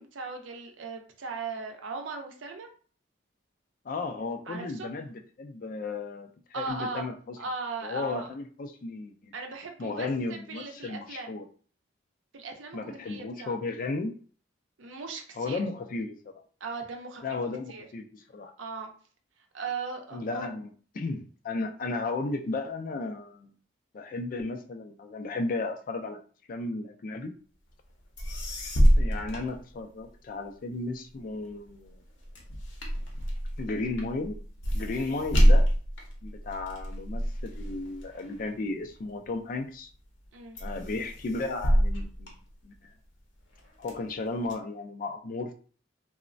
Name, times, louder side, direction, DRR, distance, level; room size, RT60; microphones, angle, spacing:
voice 1, 0.0-2.7 4.5-4.9 6.5-7.1 7.4-8.3 9.3-11.4 12.3-13.6 14.8-15.6 16.6-17.4 17.7-17.9 18.6-18.9 19.5-20.5 34.9-35.2 40.3-40.6, right 4 dB, 80° right, 3 dB, 0.6 m, -38 dB
voice 2, 3.8-7.4 7.8-9.3 9.8-11.4 12.7-14.1 15.4-16.3 17.2-18.5 20.1-20.7 20.9-23.5 23.9-26.2 26.5-27.3 29.0-32.0 33.6-34.4 34.7-35.7 36.2-39.9 40.6-42.3 42.6-42.9 43.8-45.5, left 3 dB, 45° left, 5 dB, 0.3 m, -34 dB
sound 1, 27.9-28.0 28.2-30.3 30.7-39.4 39.9-40.3 40.6-43.1 43.5-44.5, equal, 70° left, 0.7 m, -27 dB
3.0 x 2.0 x 2.5 m, 0.42 s
head